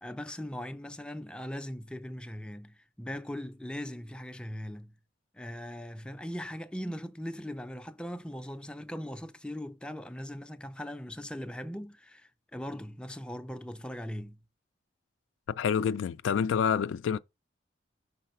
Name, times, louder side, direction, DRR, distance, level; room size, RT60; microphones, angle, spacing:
voice 1, 0.0-4.9 5.3-14.4, equal, 5° left, 0.4 m, -40 dB
voice 2, 15.6-17.2, left 7 dB, 85° left, 0.3 m, -27 dB
5.6 x 4.0 x 4.2 m
head